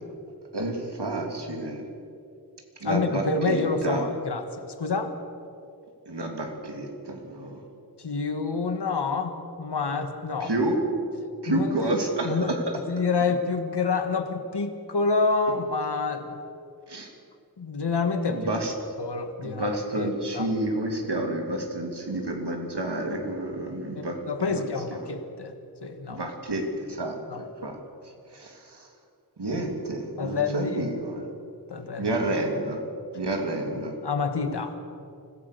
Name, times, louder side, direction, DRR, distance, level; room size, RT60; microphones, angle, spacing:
voice 1, 0.5-1.8 2.8-4.0 6.1-7.6 10.4-10.8 11.4-12.6 16.9-17.1 18.3-18.7 19.4-24.6 24.9-25.0 26.1-27.8 28.3-28.9 29.4-31.3 32.0-32.8 33.1-34.0, right 2 dB, 80° right, 2 dB, 3.0 m, -30 dB
voice 2, 2.8-5.1 8.0-10.5 11.5-11.7 12.2-12.5 12.9-16.4 17.6-18.5 19.0-19.7 20.0-20.5 23.9-25.5 25.8-26.3 27.3-27.4 30.2-30.9 31.7-32.2 34.0-34.7, left 4 dB, 75° left, 7 dB, 1.6 m, -28 dB
25.0 x 16.0 x 6.8 m, 2.5 s
wide cardioid pair, 70°, 40 cm